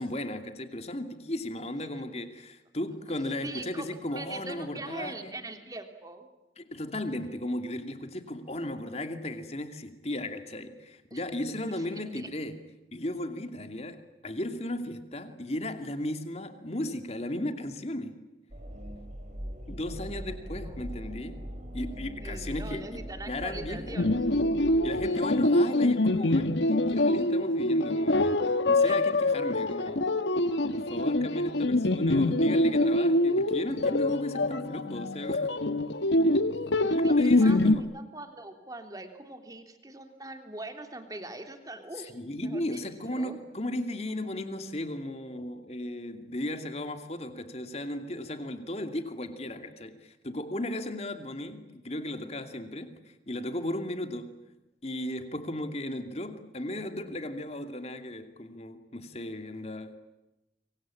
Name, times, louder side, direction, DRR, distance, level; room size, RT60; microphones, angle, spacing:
voice 1, 0.0-5.3 6.6-12.6 12.9-18.2 19.7-24.0 24.8-28.4 28.7-30.1 30.7-35.8 36.5-37.9 42.1-54.4 54.8-60.0, left 1 dB, 35° left, 2.6 m, -35 dB
voice 2, 3.4-6.3 11.1-11.2 11.8-12.3 20.3-20.8 22.2-24.5 28.8-29.0 29.6-29.9 30.4-30.5 36.8-42.8 43.1-43.4, right 2 dB, 20° right, 3.2 m, -43 dB
sound 1, 18.5-25.1, equal, 45° right, 4.6 m, -40 dB
sound 2, 24.0-37.8, left 1 dB, 85° left, 1.3 m, -25 dB
26.0 x 24.5 x 8.7 m
head